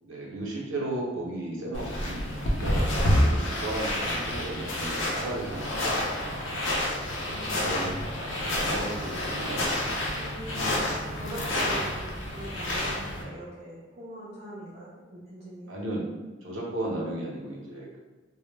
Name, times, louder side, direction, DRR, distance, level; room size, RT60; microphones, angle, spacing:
voice 1, 0.0-5.9 7.3-7.9 8.4-9.9 10.6-10.8 11.4-11.7 15.7-16.0 16.4-18.0, right 1 dB, 85° right, -3 dB, 0.6 m, -35 dB
sound 1, 1.7-13.2, left 1 dB, 75° left, 0.5 m, -29 dB
voice 2, 7.2-7.8 10.1-10.7 11.1-15.7, right 1 dB, 35° right, -8 dB, 0.4 m, -42 dB
2.1 x 2.0 x 3.1 m, 1.2 s
head